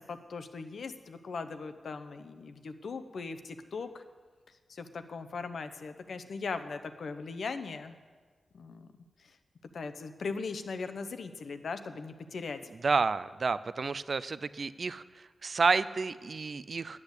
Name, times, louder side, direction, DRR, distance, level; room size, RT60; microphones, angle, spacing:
voice 1, 0.0-4.0 4.7-7.9 8.5-8.9 9.7-12.6, left 4 dB, 75° left, 9 dB, 0.9 m, -39 dB
voice 2, 12.8-15.0 15.4-17.0, right 4 dB, 55° right, 16 dB, 0.4 m, -30 dB
10.0 x 8.6 x 8.1 m, 1.4 s
wide cardioid pair, 100°, 0 cm